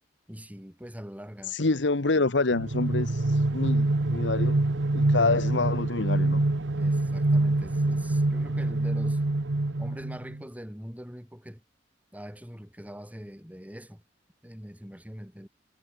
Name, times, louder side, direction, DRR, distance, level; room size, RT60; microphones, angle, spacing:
voice 1, 0.3-1.7 6.7-9.2 9.8-11.6 12.1-14.0 14.4-15.5, equal, 10° right, 5.8 m, -43 dB
voice 2, 1.4-4.6 4.9-6.4, left 3 dB, 85° left, 1.2 m, -27 dB
sound 1, 2.5-10.4, right 2 dB, 80° right, 1.1 m, -25 dB
head